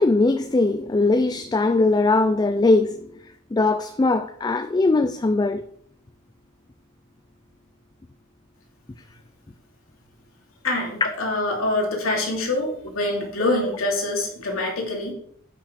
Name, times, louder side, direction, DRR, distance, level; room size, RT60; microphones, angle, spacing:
voice 1, 0.0-3.1 3.5-5.7, left 3 dB, 20° left, 0.4 m, -20 dB
voice 2, 10.6-15.1, left 2 dB, 80° left, 2.7 m, -25 dB
8.5 x 6.0 x 5.1 m
head